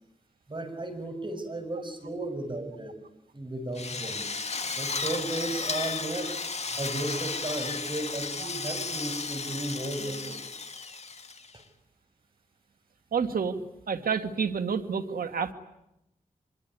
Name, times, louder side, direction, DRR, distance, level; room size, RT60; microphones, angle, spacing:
voice 1, 0.5-3.0 3.3-4.3 4.7-6.4 6.7-10.4 11.5-11.6, right 1 dB, 35° right, 8 dB, 6.2 m, -34 dB
Drill, 3.7-11.6, left 4 dB, 50° left, 2.3 m, -34 dB
voice 2, 13.1-13.6 13.9-15.5, right 6 dB, 90° right, 8 dB, 2.1 m, -29 dB
25.5 x 23.5 x 9.7 m, 0.85 s
wide cardioid pair, 70°, 15 cm